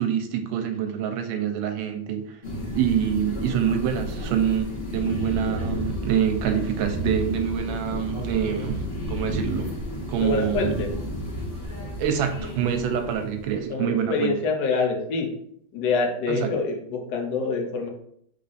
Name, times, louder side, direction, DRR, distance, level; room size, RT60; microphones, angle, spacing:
voice 1, 0.0-2.4 2.7-8.8 9.1-9.7 10.1-10.8 12.0-14.4 16.3-16.6, right 9 dB, 80° right, 6 dB, 1.3 m, -26 dB
sound 1, 2.4-13.7, left 1 dB, 35° left, 1.2 m, -32 dB
voice 2, 10.2-10.9 13.7-15.3 15.7-17.9, left 4 dB, 65° left, 1 dB, 1.4 m, -26 dB
3.7 x 3.3 x 4.1 m, 0.69 s
omnidirectional pair, 2.3 m